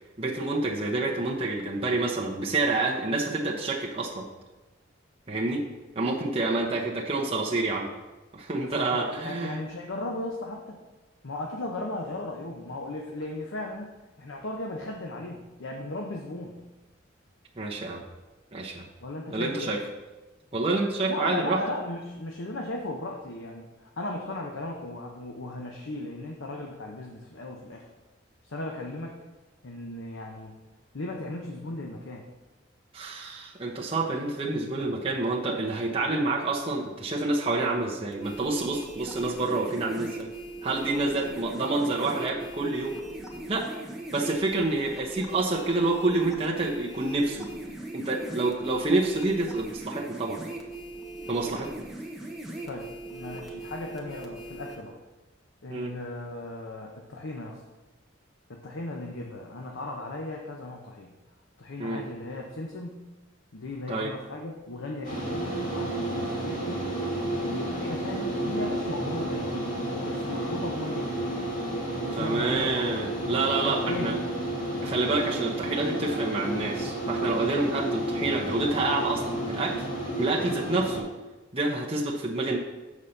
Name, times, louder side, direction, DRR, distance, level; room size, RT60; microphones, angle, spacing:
voice 1, 0.2-4.3 5.3-5.6 5.9-7.9 8.3-9.6 17.6-18.0 18.5-18.9 19.3-19.8 20.5-21.6 32.9-40.3 40.6-43.0 43.5-43.7 44.1-47.5 47.9-50.4 51.3-51.7 55.7-55.9 61.8-62.0 63.9-64.1 72.1-74.1 74.8-79.9 80.2-81.1 81.5-82.6, right 2 dB, 30° right, -2 dB, 0.9 m, -28 dB
voice 2, 8.5-10.8 11.2-13.9 14.2-16.6 19.0-19.7 21.1-27.8 28.4-29.2 29.6-30.6 30.9-32.2 52.7-55.0 55.6-57.6 58.5-61.1 61.6-63.1 63.5-66.9 67.4-69.7 70.0-71.3 72.0-72.8 73.6-74.2, left 2 dB, 75° left, 0 dB, 0.8 m, -36 dB
sound 1, 38.1-54.8, right 1 dB, ahead, 1.0 m, -40 dB
sound 2, 65.0-81.0, right 1 dB, 40° left, 2.1 m, -31 dB
7.4 x 4.2 x 6.5 m, 1.1 s
head